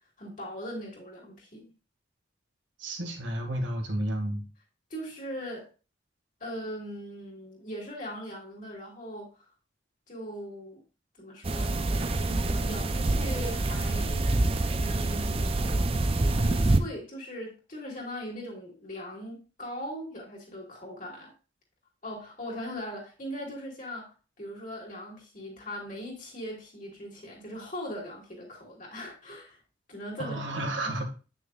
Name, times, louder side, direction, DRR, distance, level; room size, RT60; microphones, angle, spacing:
voice 1, 0.2-1.7 4.9-5.7 6.4-9.3 10.1-10.8 11.2-14.3 14.6-15.6 16.2-21.3 22.0-29.6 29.9-30.4 30.8-31.0, equal, 45° left, -3 dB, 2.8 m, -40 dB
voice 2, 2.8-4.4 30.2-31.1, right 1 dB, 85° right, 2 dB, 1.8 m, -31 dB
sound 1, 11.4-16.8, right 2 dB, 30° right, 0.5 m, -26 dB
8.7 x 6.3 x 2.4 m, 0.34 s
head